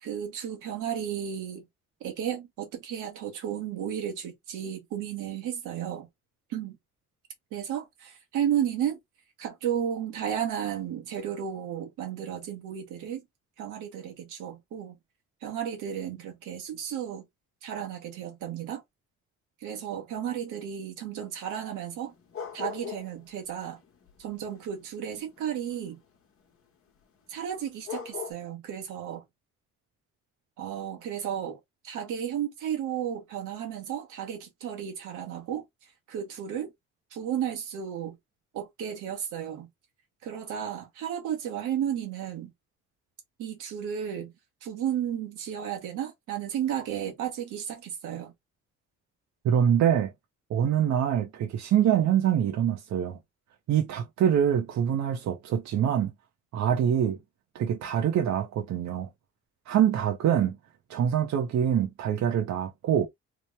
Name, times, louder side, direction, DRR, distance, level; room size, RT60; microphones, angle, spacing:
voice 1, 0.0-1.6 2.0-6.1 6.5-6.8 7.5-9.0 9.4-13.2 13.6-14.9 15.4-17.2 17.6-18.8 19.6-22.1 22.5-23.8 24.2-26.0 27.3-29.2 30.6-31.6 31.8-35.6 36.1-36.7 37.1-38.2 38.5-39.7 40.2-42.5 43.4-44.3 44.6-48.3, right 9 dB, 90° right, 1.1 m, -33 dB
sound 1, 21.9-23.2 23.5-25.9 27.5-27.6 27.8-28.3, left 7 dB, 45° left, 1.0 m, -39 dB
voice 2, 49.4-50.1 50.5-53.2 53.7-56.1 56.5-57.2 57.5-59.1 59.7-60.6 60.9-63.1, right 9 dB, 65° right, 0.7 m, -25 dB
3.0 x 2.1 x 3.1 m
cardioid pair, 90°, 30 cm